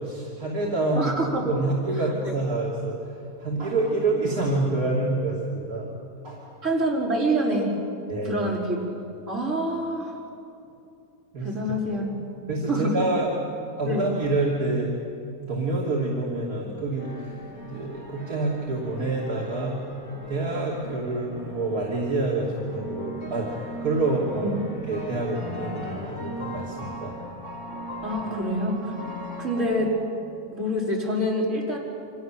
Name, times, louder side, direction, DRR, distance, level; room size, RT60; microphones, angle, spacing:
voice 1, 0.0-5.9 6.2-6.5 8.1-8.4 11.3-11.6 11.9-12.0 12.5-13.4 13.8-14.9 15.4-17.4 17.6-19.8 20.3-24.6 24.9-27.2, right 2 dB, 70° right, -5 dB, 3.3 m, -27 dB
voice 2, 1.0-1.5 2.2-2.3 6.6-7.7 8.2-9.0 9.3-10.2 11.4-12.2 12.7-13.0 13.8-14.1 24.4-24.5 28.0-28.9 29.4-30.0 30.5-31.8, right 1 dB, 50° right, -4 dB, 5.4 m, -26 dB
sound 1, 17.0-29.8, right 1 dB, 50° left, 4.6 m, -38 dB
29.0 x 26.0 x 7.6 m, 2.7 s
omnidirectional pair, 1.6 m